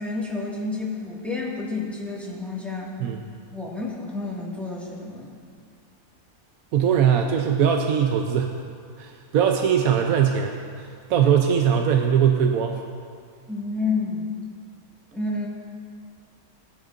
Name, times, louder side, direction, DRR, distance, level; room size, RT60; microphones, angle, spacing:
voice 1, 0.0-2.9 3.5-5.4 13.5-14.3 15.1-15.5, left 3 dB, ahead, -5 dB, 1.8 m, -30 dB
voice 2, 6.7-8.5 9.0-12.8, right 8 dB, 75° right, 3 dB, 1.1 m, -21 dB
19.5 x 10.0 x 2.6 m, 2.2 s
omnidirectional pair, 1.6 m